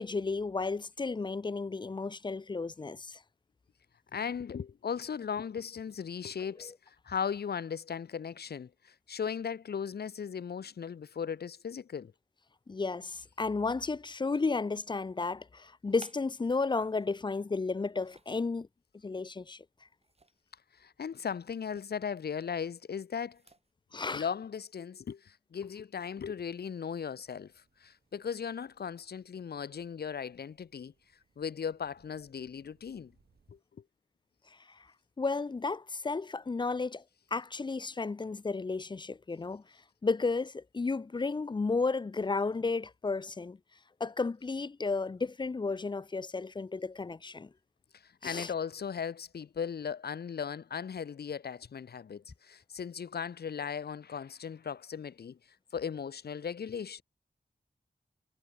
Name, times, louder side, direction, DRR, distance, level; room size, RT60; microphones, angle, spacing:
voice 1, 0.0-3.2 6.6-6.7 12.7-18.7 19.0-19.6 23.9-24.2 35.2-37.0 37.3-39.6 40.0-43.6 44.0-47.5 48.2-48.5, left 4 dB, 30° left, 0.5 m, -33 dB
voice 2, 4.1-12.1 20.8-23.4 24.1-27.5 27.8-30.9 31.4-33.1 33.5-33.6 47.9-55.4 55.7-57.0, left 7 dB, 85° left, 0.8 m, -37 dB
sound 1, 14.1-14.8 15.6-17.2 17.7-18.5 20.0-20.5 20.8-21.0 21.5-21.9 23.2-23.7, right 3 dB, 40° right, 4.3 m, -58 dB
sound 2, 27.0-33.6, right 5 dB, 80° right, 7.0 m, -72 dB
wide cardioid pair, 115°, 16 cm